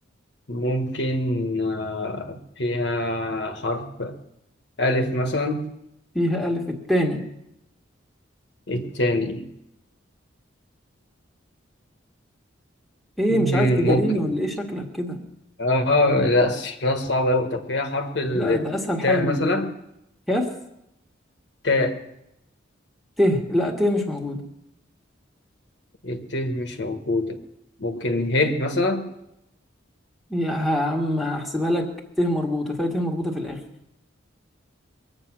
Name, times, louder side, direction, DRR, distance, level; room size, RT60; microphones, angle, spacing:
voice 1, 0.5-4.2 4.8-5.7 8.7-9.5 13.3-14.2 15.6-18.7 19.0-19.7 21.6-22.0 26.0-27.4 27.8-29.1, left 1 dB, 60° left, 1.4 m, -24 dB
voice 2, 6.1-7.3 13.2-15.2 18.3-19.6 20.3-20.5 23.2-24.4 30.3-31.9 32.2-33.6, equal, ahead, 1.8 m, -24 dB
23.0 x 8.7 x 6.2 m
head